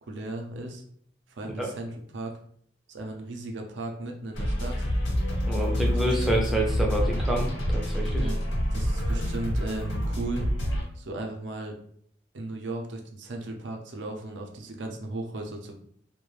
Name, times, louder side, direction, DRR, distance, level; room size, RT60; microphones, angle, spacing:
voice 1, 0.0-0.8 1.3-2.3 2.9-4.9 6.2-6.4 8.2-8.4 8.7-10.5 11.0-11.8 12.3-15.8, right 2 dB, 70° right, 2 dB, 0.5 m, -36 dB
sound 1, 4.3-10.8, equal, 75° left, 0.9 m, -27 dB
voice 2, 5.5-8.3, right 1 dB, ahead, -2 dB, 0.4 m, -28 dB
2.3 x 2.1 x 3.1 m, 0.65 s
head